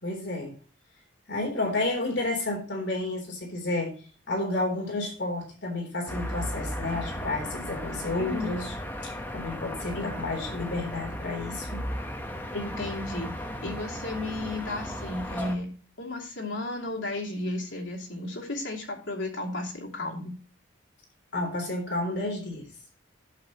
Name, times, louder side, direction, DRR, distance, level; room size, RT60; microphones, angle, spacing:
voice 1, 0.0-0.5 1.3-4.0 4.3-8.7 9.0-11.8 21.3-22.7, left 2 dB, 60° left, 0 dB, 3.5 m, -31 dB
sound 1, 6.1-15.6, equal, 10° left, 1.0 m, -36 dB
voice 2, 8.2-8.6 9.9-10.1 12.5-13.3 13.6-15.7 16.0-20.4, left 2 dB, 80° left, -1 dB, 2.8 m, -33 dB
11.0 x 7.8 x 3.0 m, 0.38 s
head